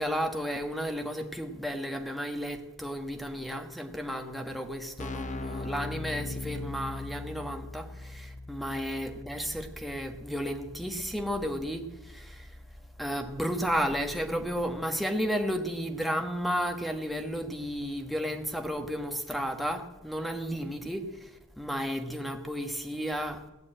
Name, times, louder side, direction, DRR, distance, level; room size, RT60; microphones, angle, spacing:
voice 1, 0.0-12.5 13.0-21.3 21.6-23.4, equal, ahead, 5 dB, 1.2 m, -33 dB
Keyboard (musical), 4.4-4.5 4.7-15.3, left 2 dB, 35° left, 0.6 m, -42 dB
17.0 x 7.0 x 8.9 m, 1.0 s
head